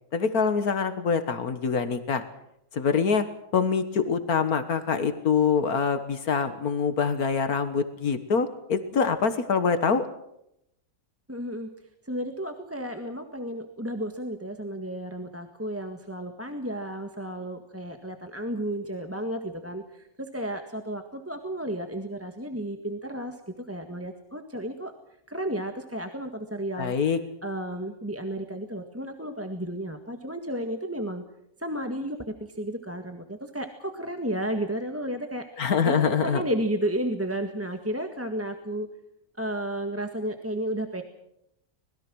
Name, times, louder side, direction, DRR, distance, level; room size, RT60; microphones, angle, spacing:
voice 1, 0.1-2.2 2.7-3.3 3.5-10.0 26.8-27.2 35.6-36.4, left 6 dB, 75° left, 10 dB, 1.9 m, -25 dB
voice 2, 11.3-11.7 12.0-24.9 25.3-26.9 27.4-31.2 31.6-38.9 39.4-41.0, right 1 dB, 10° right, 5 dB, 1.7 m, -33 dB
25.5 x 21.0 x 6.3 m, 0.79 s
omnidirectional pair, 1.6 m